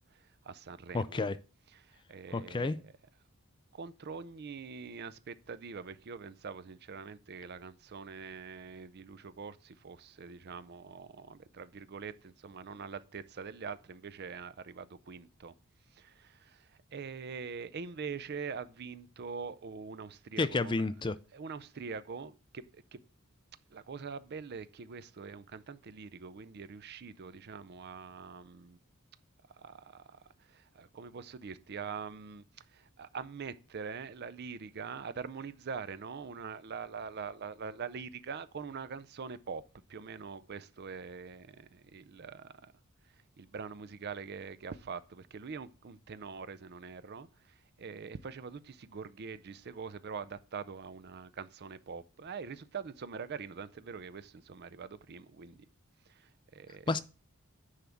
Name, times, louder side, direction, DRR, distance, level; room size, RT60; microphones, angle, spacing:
voice 1, 0.1-1.3 1.8-2.7 3.7-15.5 15.9-20.8 21.3-23.0 23.7-28.8 29.5-32.4 32.7-39.6 39.9-42.7 43.4-55.7 56.1-56.9, right 5 dB, 50° right, 0.5 m, -44 dB
voice 2, 0.9-1.4 2.3-2.8 20.4-21.2 56.9-57.0, left 3 dB, 20° left, 0.3 m, -30 dB
9.9 x 3.5 x 6.9 m
head